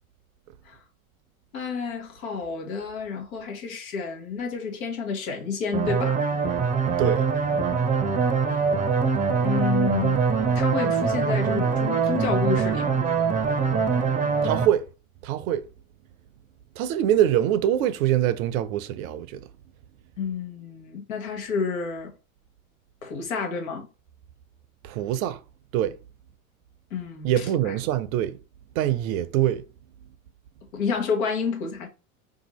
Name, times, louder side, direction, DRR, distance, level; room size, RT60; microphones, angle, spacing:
voice 1, 1.5-6.3 9.4-10.2 10.5-13.0 20.2-22.1 23.0-23.9 26.9-27.8 30.7-31.9, left 5 dB, 80° left, 1.1 m, -29 dB
sound 1, 5.7-14.6, right 5 dB, 20° right, 0.5 m, -23 dB
voice 2, 6.9-7.3 14.4-14.9 15.2-15.6 16.8-19.5 24.8-25.4 25.7-25.9 27.2-28.4 28.8-29.6, right 11 dB, 75° right, 0.6 m, -24 dB
2.7 x 2.5 x 4.1 m
hypercardioid pair, 90°, 42 cm